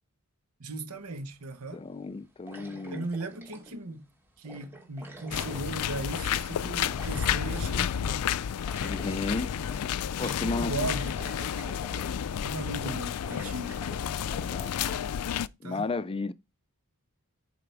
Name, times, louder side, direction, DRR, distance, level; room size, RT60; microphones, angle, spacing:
voice 1, 0.6-1.8 2.9-4.0 4.4-8.3 10.2-11.1 12.4-13.8 15.6-15.8, right 2 dB, 75° right, 1.3 m, -37 dB
sound 1, 1.1-1.2 2.5-3.9 4.4-6.2 6.9-7.7 8.7-9.9 10.3-10.4 10.9-12.4 12.8-12.9 13.2-15.1, right 2 dB, 10° right, 2.7 m, -47 dB
voice 2, 1.7-3.1 8.8-9.5 10.2-10.8 12.8-13.0 14.5-14.8 15.6-16.3, left 3 dB, 25° left, 0.4 m, -33 dB
sound 2, 5.3-15.5, left 8 dB, 90° left, 0.4 m, -31 dB
10.0 x 4.9 x 4.7 m
head